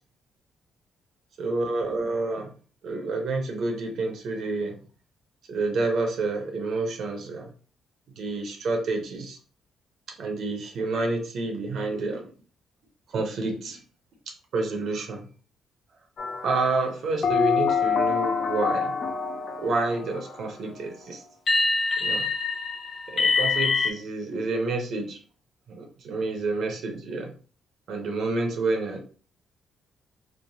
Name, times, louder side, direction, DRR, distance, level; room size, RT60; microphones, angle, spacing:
voice 1, 1.4-2.5 2.8-4.8 5.5-7.5 8.2-9.4 10.2-12.3 13.1-13.8 14.5-15.3 16.4-19.0 19.6-21.2 22.0-22.3 23.1-25.2 25.7-27.3 27.9-29.0, right 3 dB, 65° right, 4 dB, 0.6 m, -29 dB
sound 1, 16.2-16.7 17.2-20.3 21.5-23.9, left 5 dB, 50° left, 0.5 m, -25 dB
3.0 x 2.0 x 2.6 m, 0.39 s
cardioid pair, 90°, 0 cm